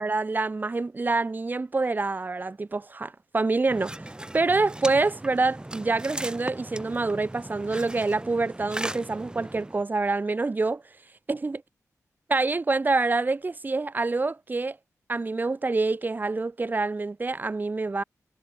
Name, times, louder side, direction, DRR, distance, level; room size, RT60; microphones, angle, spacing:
voice 1, 0.0-4.1 4.3-10.8 11.3-11.6 12.3-14.8 15.1-18.0, right 3 dB, 30° right, 0.8 m, -26 dB
sound 1, 3.7-9.8, right 1 dB, 15° right, 2.1 m, -38 dB
wide cardioid pair, 80°, 6 cm